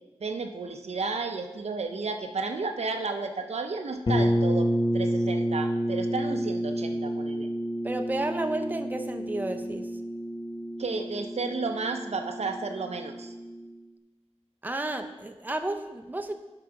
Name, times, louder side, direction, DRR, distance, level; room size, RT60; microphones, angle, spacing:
voice 1, 0.2-4.7 4.9-7.5 10.8-13.3, right 4 dB, 70° right, 5 dB, 0.7 m, -32 dB
sound 1, 4.1-13.7, equal, 40° left, 0.9 m, -29 dB
voice 2, 7.8-9.9 14.6-16.3, right 2 dB, 15° right, 7 dB, 0.6 m, -32 dB
7.5 x 5.0 x 5.8 m, 1.2 s
wide cardioid pair, 70°, 11 cm